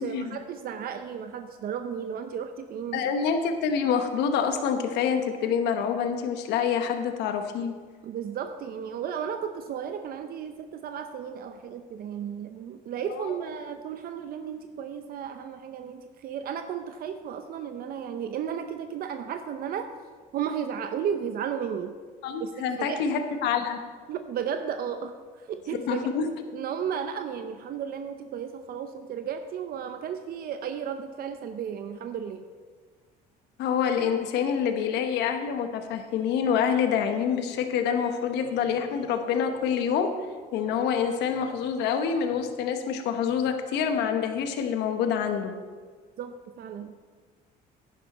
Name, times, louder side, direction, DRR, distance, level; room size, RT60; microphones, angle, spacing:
voice 1, 0.0-3.0 8.0-19.9 20.3-21.9 22.4-23.1 24.1-26.1 26.5-32.4 46.2-47.0, right 8 dB, 60° right, 8 dB, 0.7 m, -34 dB
voice 2, 2.9-7.7 13.1-13.3 22.2-23.8 25.7-26.3 33.6-40.1 40.5-45.5, left 7 dB, 85° left, 6 dB, 1.1 m, -27 dB
10.5 x 10.5 x 4.2 m, 1.6 s
cardioid pair, 110°, 17 cm